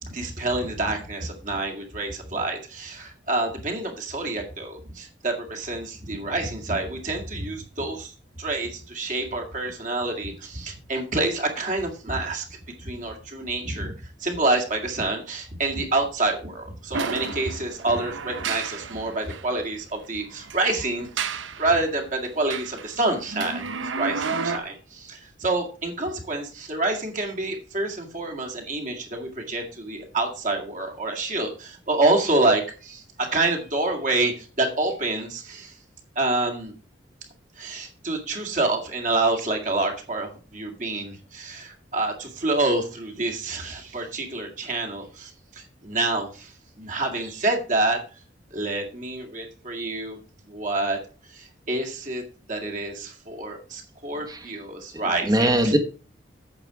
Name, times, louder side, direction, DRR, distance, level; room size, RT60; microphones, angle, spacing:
voice 1, 0.0-12.4 12.8-13.9 14.2-23.6 23.9-35.7 36.2-36.7 37.6-48.0 48.5-50.2 50.5-51.0 51.3-52.2 52.5-55.7, right 2 dB, 40° right, 2.0 m, -27 dB
sound 1, 16.9-19.5 20.4-21.7 22.2-24.6, right 5 dB, 85° right, 0.9 m, -31 dB
voice 2, 54.9-55.8, right 1 dB, 20° right, 1.2 m, -22 dB
8.8 x 7.6 x 4.8 m
head